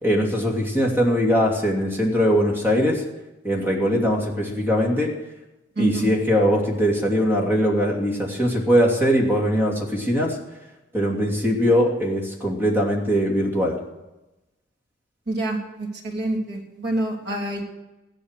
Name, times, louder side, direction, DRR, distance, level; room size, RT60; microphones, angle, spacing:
voice 1, 0.0-3.0 3.4-5.2 5.8-10.4 10.9-13.8, equal, 10° right, -1 dB, 2.8 m, -21 dB
voice 2, 5.8-6.1 15.3-17.6, right 2 dB, 55° right, -1 dB, 3.4 m, -27 dB
15.5 x 11.5 x 6.7 m, 1.0 s
head